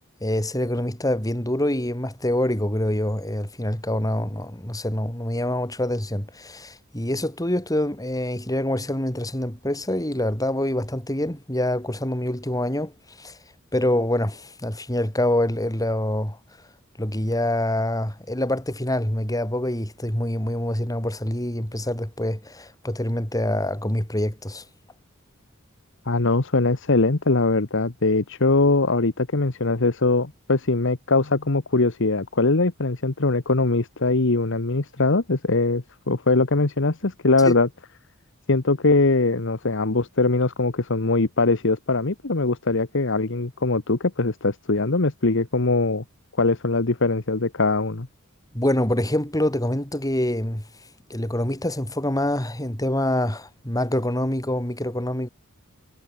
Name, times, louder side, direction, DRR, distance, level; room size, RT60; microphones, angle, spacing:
voice 1, 0.2-12.9 13.2-13.4 13.7-16.4 17.0-24.6 37.4-37.6 48.5-50.6 51.1-55.3, left 1 dB, 15° left, 4.6 m, -25 dB
voice 2, 26.0-37.7 38.5-46.0 46.4-48.1, left 3 dB, 65° left, 1.3 m, -21 dB
head